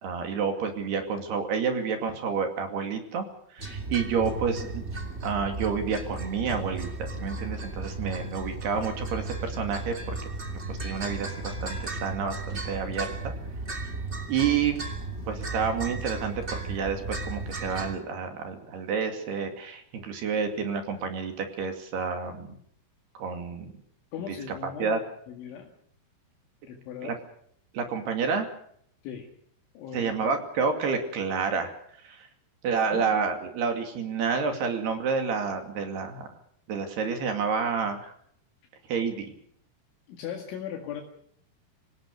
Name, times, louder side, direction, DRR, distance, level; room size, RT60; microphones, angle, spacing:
voice 1, 0.0-3.3 3.5-4.8 5.2-10.2 10.7-13.3 14.3-14.8 15.3-22.6 23.1-23.7 24.3-24.4 24.6-25.0 27.0-27.2 27.7-28.5 29.9-31.7 32.0-32.3 32.6-36.3 36.7-38.1 38.9-39.3, right 5 dB, 55° right, 5 dB, 4.2 m, -29 dB
sound 1, 3.6-17.9, right 3 dB, 25° right, 1.7 m, -35 dB
voice 2, 24.1-25.0 25.3-25.7 26.7-27.2 29.0-29.3 29.8-30.3 32.9-33.2 40.1-41.0, left 8 dB, 70° left, 2 dB, 4.3 m, -38 dB
26.0 x 17.5 x 6.7 m, 0.66 s
omnidirectional pair, 5.8 m